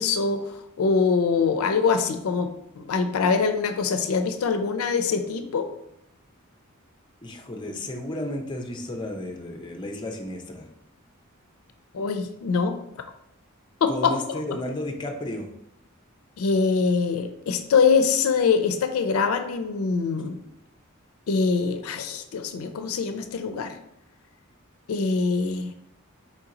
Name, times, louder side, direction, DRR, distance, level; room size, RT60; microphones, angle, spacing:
voice 1, 0.0-2.5 2.8-5.7 11.9-12.8 13.8-14.4 16.4-20.4 21.3-23.8 24.9-25.8, left 5 dB, 80° left, 8 dB, 0.4 m, -24 dB
voice 2, 7.2-10.7 13.9-15.5, left 1 dB, 20° left, 3 dB, 0.5 m, -33 dB
4.5 x 2.8 x 3.7 m, 0.81 s
head